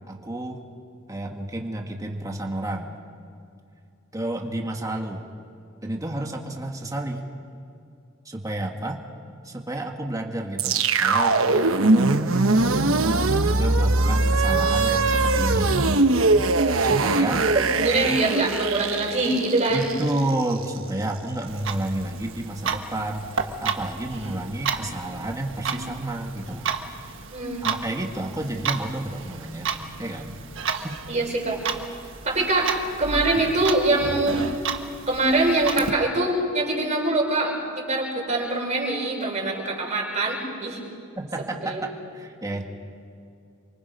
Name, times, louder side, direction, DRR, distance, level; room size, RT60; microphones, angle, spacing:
voice 1, 0.1-0.6 1.1-2.9 4.1-5.3 5.8-7.3 8.2-9.0 9.4-12.2 12.9-15.8 16.8-17.4 19.7-26.7 27.6-29.7 30.0-30.3 33.3-33.4 41.2-42.6, right 1 dB, 15° right, 2 dB, 1.7 m, -31 dB
sound 1, 10.6-20.8, right 3 dB, 85° right, 1.1 m, -21 dB
voice 2, 17.7-19.9 27.3-27.9 31.1-31.6 32.2-32.7 33.0-34.4 35.1-40.8 41.6-41.8, right 2 dB, 35° right, -1 dB, 5.5 m, -24 dB
Clock, 21.5-35.9, right 5 dB, 70° right, 1.5 m, -32 dB
28.0 x 24.5 x 5.4 m, 2.5 s
head